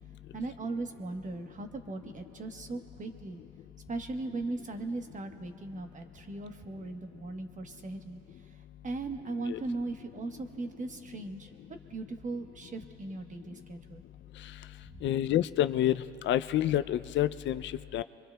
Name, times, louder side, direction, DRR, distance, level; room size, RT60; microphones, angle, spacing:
voice 1, 0.3-3.4 3.9-14.0 14.8-15.1, right 2 dB, 40° right, 6 dB, 1.1 m, -38 dB
voice 2, 15.0-18.0, left 12 dB, 70° left, 13 dB, 0.4 m, -28 dB
25.0 x 23.0 x 2.2 m, 2.9 s
cardioid pair, 90°, 20 cm